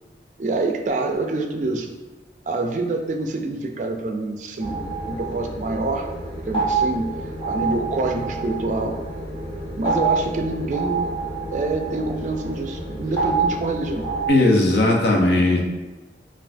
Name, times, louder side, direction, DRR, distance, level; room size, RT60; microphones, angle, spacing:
voice 1, 0.4-1.9 2.5-6.1 6.4-7.1 7.5-9.0 9.7-11.1 11.5-14.1, right 2 dB, 45° right, 4 dB, 0.3 m, -26 dB
sound 1, 4.6-14.3, right 4 dB, 30° left, 1.4 m, -27 dB
voice 2, 14.3-15.6, left 2 dB, 70° left, 0 dB, 0.7 m, -17 dB
5.4 x 2.5 x 2.6 m, 1.2 s
head